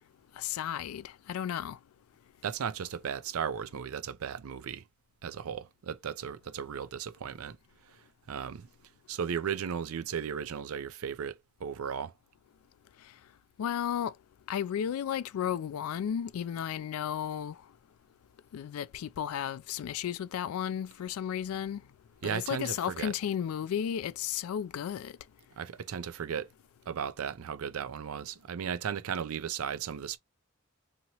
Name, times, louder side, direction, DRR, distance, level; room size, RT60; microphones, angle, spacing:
voice 1, 0.4-1.8 13.6-14.1 14.5-17.6 18.5-21.8 22.2-25.2, left 9 dB, 80° left, 0.3 m, -33 dB
voice 2, 2.4-4.8 5.2-7.6 8.3-8.7 9.1-12.1 22.2-23.1 25.6-26.5 26.9-30.2, right 7 dB, 80° right, 0.4 m, -35 dB
2.9 x 2.8 x 2.8 m
head